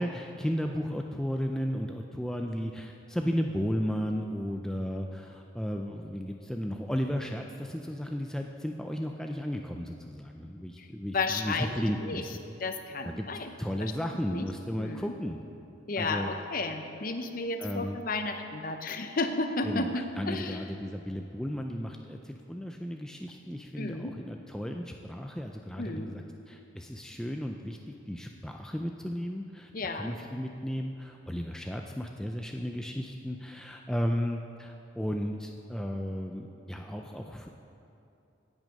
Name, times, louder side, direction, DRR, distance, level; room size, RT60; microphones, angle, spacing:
voice 1, 0.0-12.4 13.0-13.3 13.6-15.4 16.0-16.3 17.6-18.0 19.6-27.8 28.1-37.5, equal, 5° left, 2 dB, 0.3 m, -34 dB
voice 2, 11.1-12.3 12.6-13.5 13.8-13.9 14.3-14.5 14.8-15.1 15.9-20.7 23.8-24.2 25.8-26.1 29.7-30.1, left 3 dB, 45° left, 7 dB, 0.7 m, -33 dB
17.0 x 6.3 x 5.2 m, 2.7 s
head